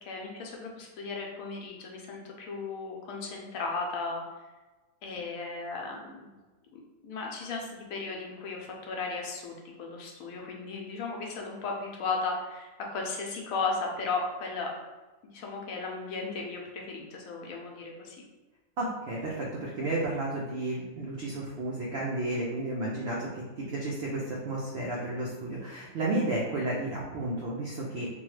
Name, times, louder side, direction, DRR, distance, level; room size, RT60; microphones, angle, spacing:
voice 1, 0.0-4.2 5.0-6.3 6.7-14.7 15.3-18.2, left 4 dB, 70° left, 0 dB, 1.0 m, -35 dB
voice 2, 18.8-28.1, right 2 dB, 70° right, -4 dB, 0.6 m, -32 dB
3.0 x 2.2 x 3.1 m, 1.2 s
omnidirectional pair, 1.6 m